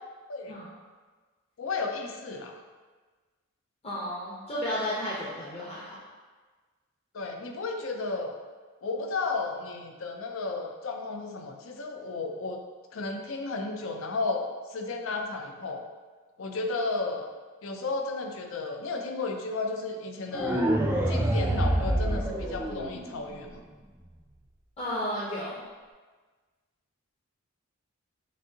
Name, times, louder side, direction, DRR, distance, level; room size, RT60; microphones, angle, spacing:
voice 1, 1.6-2.5 7.1-8.3 8.8-12.6 12.9-15.8 16.4-17.3 17.6-20.7 21.1-23.6, left 3 dB, 65° left, 3 dB, 0.5 m, -33 dB
voice 2, 3.8-5.9 24.8-25.6, equal, 30° left, -8 dB, 0.8 m, -33 dB
sound 1, 20.3-23.3, right 1 dB, 10° right, 0.3 m, -26 dB
6.1 x 2.6 x 2.8 m, 1.4 s
head